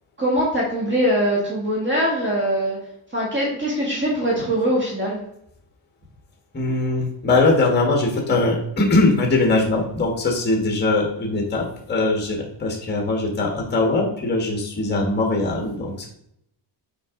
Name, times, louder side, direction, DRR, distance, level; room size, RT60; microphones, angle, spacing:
voice 1, 0.2-2.8 3.1-5.2, equal, 25° right, -4 dB, 1.6 m, -22 dB
voice 2, 6.5-16.1, left 2 dB, 20° left, 1 dB, 1.5 m, -21 dB
6.0 x 4.7 x 3.7 m, 0.74 s
cardioid pair, 135°, 46 cm